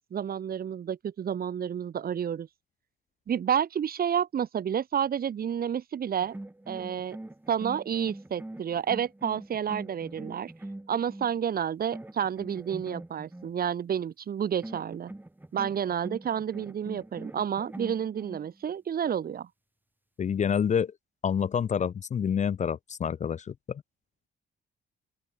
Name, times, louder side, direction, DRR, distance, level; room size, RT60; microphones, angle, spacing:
voice 1, 0.1-2.5 3.3-6.3 6.7-7.2 7.5-10.5 10.9-15.1 15.5-19.5, right 8 dB, 50° right, 1.0 m, -30 dB
sound 1, 6.2-11.4 11.9-13.5 14.6-18.5, right 1 dB, 10° right, 2.3 m, -43 dB
voice 2, 20.2-20.9 21.2-23.8, left 7 dB, 35° left, 0.5 m, -28 dB
open air
cardioid pair, 90°, 20 cm